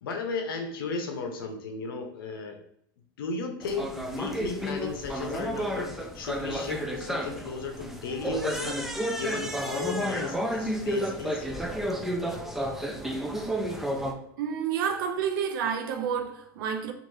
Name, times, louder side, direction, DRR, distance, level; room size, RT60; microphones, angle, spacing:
voice 1, 0.0-2.6 3.2-8.8 9.2-11.5, left 4 dB, 80° left, 0.7 m, -35 dB
sound 1, 3.6-14.1, equal, ahead, 0.4 m, -31 dB
voice 2, 14.4-16.9, right 7 dB, 70° right, 0.5 m, -29 dB
3.1 x 2.5 x 2.7 m
hypercardioid pair, 110°, 12 cm